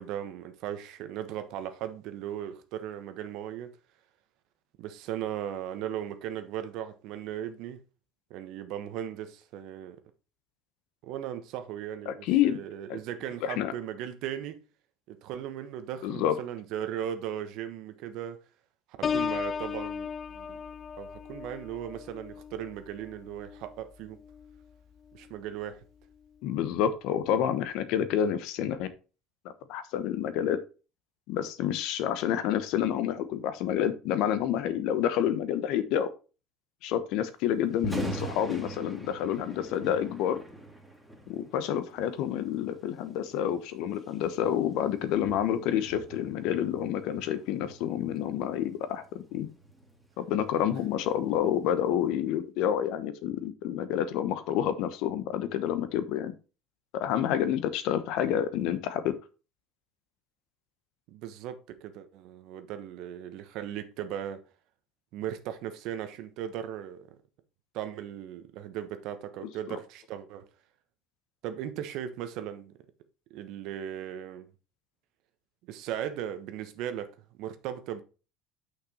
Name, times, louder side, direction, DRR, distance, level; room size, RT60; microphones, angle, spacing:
voice 1, 0.0-3.7 4.8-7.8 8.3-10.0 11.0-14.6 15.1-18.4 19.0-20.6 21.0-24.2 25.1-25.8 61.1-64.4 65.1-67.1 67.7-70.5 71.4-72.7 73.3-74.5 75.7-78.0, right 10 dB, 65° right, 1.1 m, -37 dB
voice 2, 12.1-12.6 12.9-13.0 13.4-13.7 16.0-16.3 26.4-28.9 29.7-30.6 31.3-36.1 36.8-40.4 41.3-49.5 50.2-56.3 56.9-59.2 69.7-69.8, left 10 dB, 70° left, 1.0 m, -28 dB
Piano, 19.0-24.6 25.1-25.5, left 7 dB, 40° left, 0.4 m, -36 dB
Thunder, 37.7-51.8, right 2 dB, ahead, 2.5 m, -43 dB
6.0 x 5.9 x 4.3 m
supercardioid pair, 85°, 0 cm